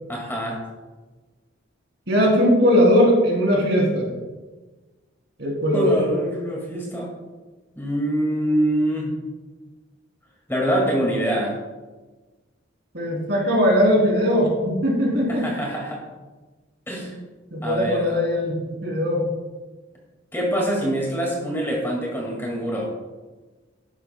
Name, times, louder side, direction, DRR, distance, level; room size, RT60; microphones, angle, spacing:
voice 1, 0.1-0.6 5.7-7.1 7.8-9.1 10.5-11.6 15.3-16.0 16.9-17.1 17.6-18.2 20.3-22.9, right 1 dB, 10° left, -2 dB, 2.0 m, -24 dB
voice 2, 2.1-4.1 5.4-6.0 12.9-15.5 17.5-19.2, equal, 55° right, -2 dB, 3.1 m, -19 dB
12.0 x 10.0 x 2.2 m, 1.2 s
head